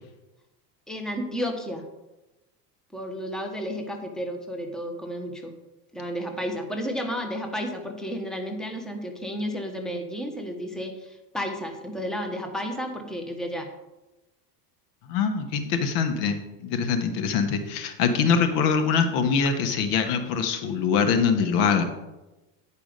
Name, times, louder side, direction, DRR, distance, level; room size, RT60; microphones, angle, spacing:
voice 1, 0.9-1.8 2.9-5.5 5.9-13.7, equal, ahead, 3 dB, 1.1 m, -32 dB
voice 2, 15.1-21.8, left 6 dB, 70° left, 7 dB, 1.3 m, -23 dB
9.6 x 5.0 x 5.2 m, 1.0 s
supercardioid pair, 110°, 47 cm